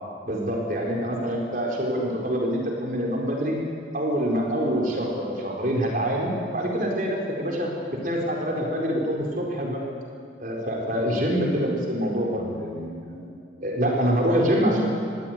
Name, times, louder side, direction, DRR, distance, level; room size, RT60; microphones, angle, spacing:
voice 1, 0.3-3.6 3.9-9.8 10.4-13.3 13.6-15.0, equal, 45° right, -1 dB, 4.5 m, -25 dB
21.0 x 15.5 x 9.3 m, 2.3 s
head